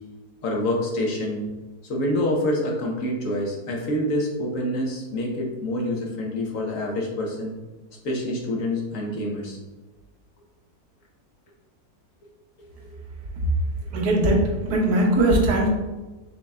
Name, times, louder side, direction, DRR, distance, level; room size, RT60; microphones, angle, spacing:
voice 1, 0.4-1.5 1.8-7.5 8.0-9.6, left 1 dB, 60° left, -1 dB, 1.1 m, -26 dB
voice 2, 13.9-15.7, right 1 dB, 90° right, -1 dB, 1.5 m, -20 dB
5.6 x 3.9 x 2.2 m, 1.2 s
omnidirectional pair, 1.7 m